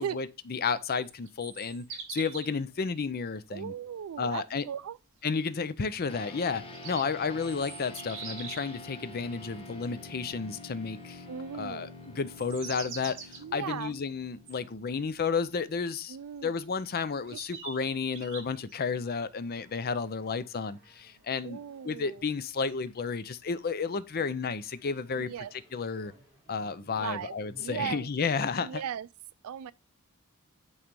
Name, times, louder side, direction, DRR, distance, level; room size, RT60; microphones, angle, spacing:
voice 1, 0.0-3.7 4.2-4.6 5.2-11.2 11.5-16.2 16.4-21.6 21.8-25.3 25.7-26.1 26.5-28.8, left 5 dB, 45° left, 0.5 m, -32 dB
sound 1, 1.0-2.6 6.5-8.8 12.2-13.4 14.5-14.6 16.4-16.5 17.3-18.7, right 5 dB, 60° right, 2.0 m, -43 dB
voice 2, 3.5-5.0 11.3-11.9 13.4-13.9 16.1-16.5 17.3-17.4 21.4-22.2 25.1-25.5 27.0-28.1 28.6-29.1 29.4-29.7, right 8 dB, 75° right, 0.4 m, -37 dB
sound 2, 6.1-15.7, left 2 dB, 25° left, 1.0 m, -47 dB
sound 3, 19.1-28.1, right 1 dB, 15° right, 2.6 m, -60 dB
8.7 x 3.2 x 5.2 m
head